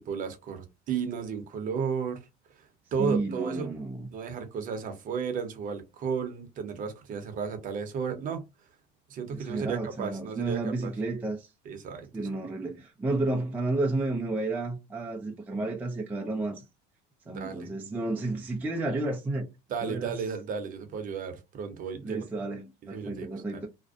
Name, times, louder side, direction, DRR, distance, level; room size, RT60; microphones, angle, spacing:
voice 1, 0.0-2.2 2.6-2.7 2.9-3.7 4.1-8.4 9.1-10.9 11.6-12.4 17.3-17.7 19.7-22.2 22.9-23.3 23.5-23.6, right 6 dB, 40° right, 0.7 m, -33 dB
voice 2, 3.0-4.1 9.3-11.5 12.1-16.6 17.3-19.5 19.8-20.2 22.0-23.7, right 2 dB, 10° right, 0.3 m, -31 dB
2.5 x 2.1 x 2.5 m
supercardioid pair, 120°, 21 cm